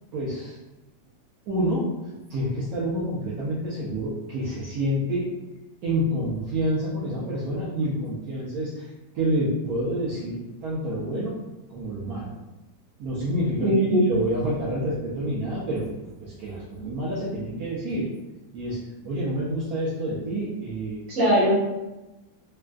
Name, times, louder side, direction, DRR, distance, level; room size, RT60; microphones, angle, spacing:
voice 1, 0.1-0.6 1.5-1.9 2.3-5.3 5.8-8.9 9.1-11.4 11.7-12.3 13.0-13.7 14.1-15.9 16.2-18.1 18.5-21.0, right 1 dB, 65° right, -8 dB, 1.0 m, -28 dB
voice 2, 13.6-14.1 16.7-16.9 21.1-21.6, equal, 50° right, -8 dB, 1.5 m, -21 dB
3.4 x 2.4 x 2.2 m, 1.0 s
omnidirectional pair, 2.0 m